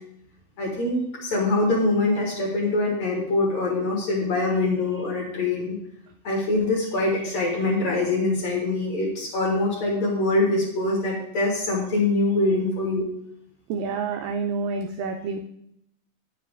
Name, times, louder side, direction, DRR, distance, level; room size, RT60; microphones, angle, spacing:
voice 1, 0.6-5.8 6.2-13.0, left 2 dB, 55° left, -2 dB, 2.3 m, -24 dB
voice 2, 13.7-15.4, right 4 dB, 90° right, 5 dB, 1.9 m, -28 dB
9.8 x 7.2 x 3.5 m, 0.74 s
omnidirectional pair, 4.5 m